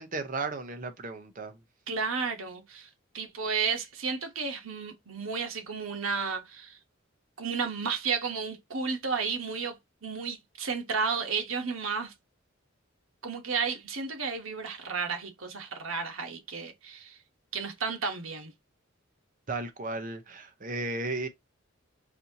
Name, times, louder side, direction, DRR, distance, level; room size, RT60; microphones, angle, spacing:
voice 1, 0.0-1.6 19.5-21.3, right 3 dB, 40° right, 0.7 m, -34 dB
voice 2, 1.9-6.8 7.4-9.8 10.0-12.1 13.2-17.2 17.5-18.5, right 5 dB, 90° right, 1.1 m, -32 dB
4.2 x 2.7 x 2.8 m
head